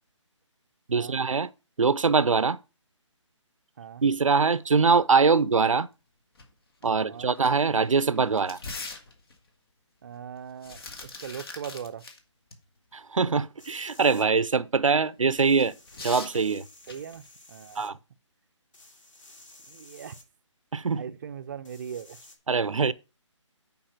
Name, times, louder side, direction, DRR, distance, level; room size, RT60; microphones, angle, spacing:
voice 1, 0.9-1.5 1.8-2.6 4.0-5.9 6.8-8.6 12.9-15.7 16.0-16.6 17.8-18.0 20.7-21.0 22.5-22.9, right 5 dB, 90° right, 0.6 m, -23 dB
sound 1, 6.3-6.4 6.8-6.9 7.3-9.5 10.4-12.2 12.5-12.6 15.3-17.3, left 3 dB, 50° left, 2.2 m, -42 dB
voice 2, 6.8-7.3 10.0-12.0 16.9-17.2 17.5-17.8 19.7-20.1 20.9-22.2, right 8 dB, 40° right, 0.6 m, -40 dB
sound 2, 13.6-14.2 15.4-17.9 18.7-20.2 21.6-22.4, left 2 dB, 75° left, 2.9 m, -53 dB
8.9 x 5.4 x 5.8 m
figure-of-eight pair, 155°, 16 cm